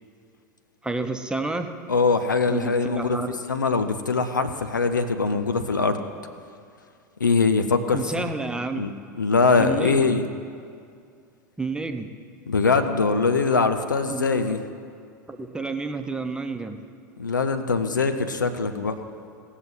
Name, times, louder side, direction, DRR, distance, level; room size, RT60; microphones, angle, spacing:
voice 1, 0.8-1.7 2.5-3.4 7.9-8.9 9.6-10.2 11.6-12.1 14.1-14.6 15.3-16.8, right 3 dB, 10° right, 6 dB, 0.8 m, -30 dB
voice 2, 1.9-3.2 3.5-6.0 7.2-8.2 8.8-8.9 9.2-10.2 12.5-14.6 17.2-18.9, left 4 dB, 85° left, 8 dB, 0.7 m, -22 dB
17.5 x 6.4 x 5.5 m, 2.3 s
figure-of-eight pair, 80°, 10 cm